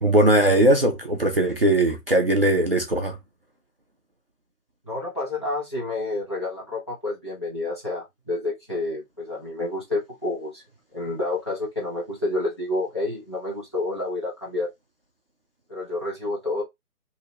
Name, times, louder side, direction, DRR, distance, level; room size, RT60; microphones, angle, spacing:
voice 1, 0.0-3.2, right 1 dB, 40° right, 0.5 m, -19 dB
voice 2, 4.9-10.6 10.9-14.7 15.7-16.6, left 2 dB, 15° left, 0.7 m, -29 dB
2.7 x 2.7 x 3.2 m
figure-of-eight pair, 150°, 47 cm